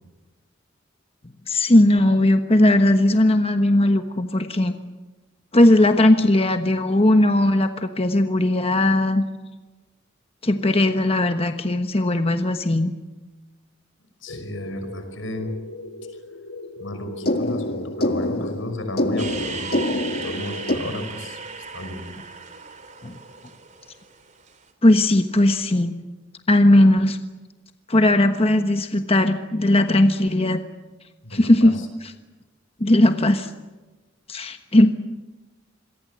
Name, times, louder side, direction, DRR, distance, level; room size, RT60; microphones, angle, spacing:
voice 1, 1.5-4.7 5.5-9.2 10.4-12.9 18.4-18.5 23.0-23.2 24.8-26.0 26.5-27.2 27.9-30.6 31.3-32.1 32.8-33.5 34.3-34.9, left 1 dB, 30° left, 7 dB, 1.2 m, -18 dB
voice 2, 14.2-15.6 16.8-19.7 20.1-21.4 21.7-22.0 31.2-31.7, left 1 dB, 85° left, 8 dB, 5.5 m, -33 dB
sound 1, 14.3-20.8, left 1 dB, 55° left, 1.7 m, -28 dB
sound 2, 19.2-24.6, right 5 dB, 40° right, 3.4 m, -36 dB
27.0 x 23.0 x 7.8 m, 1.2 s
head